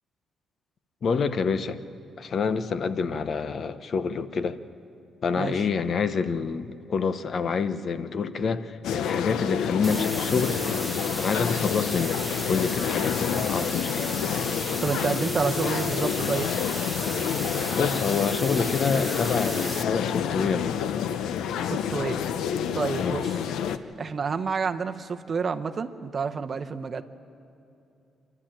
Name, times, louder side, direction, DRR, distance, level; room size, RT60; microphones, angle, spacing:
voice 1, 1.0-1.8 2.2-4.6 5.2-10.6 11.2-14.1 17.7-20.9 23.0-23.2, left 5 dB, 50° left, 11 dB, 0.9 m, -27 dB
voice 2, 5.4-5.7 14.8-16.5 17.2-17.3 21.6-22.2 22.5-23.5 24.0-27.0, right 5 dB, 40° right, 7 dB, 0.9 m, -29 dB
sound 1, 8.8-23.8, left 8 dB, 85° left, 0.7 m, -28 dB
sound 2, 9.8-19.8, equal, ahead, 1.0 m, -34 dB
27.5 x 12.0 x 8.9 m, 2.7 s
cardioid pair, 120°, 0 cm